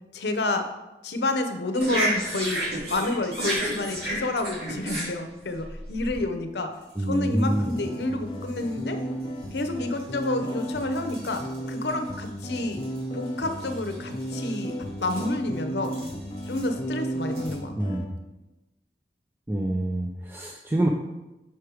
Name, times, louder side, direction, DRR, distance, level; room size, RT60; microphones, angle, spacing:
voice 1, 0.1-0.7 1.0-6.7 7.1-9.0 9.5-12.8 13.1-14.7 15.0-16.0 16.5-17.7, left 2 dB, 70° left, 7 dB, 0.7 m, -29 dB
sound 1, 1.7-6.2 6.9-7.0 7.4-7.8 8.5-8.7 9.6-9.7 10.0-13.0 13.3-14.7 15.0-15.3 15.8-16.7 17.3-17.5, right 1 dB, 65° right, 2.5 m, -32 dB
voice 2, 7.0-7.7 17.8-18.2 19.5-20.9, right 1 dB, 10° right, 0 dB, 0.4 m, -26 dB
sound 2, 7.4-18.1, right 1 dB, 30° left, 0.8 m, -34 dB
5.8 x 4.8 x 4.7 m, 1.0 s
head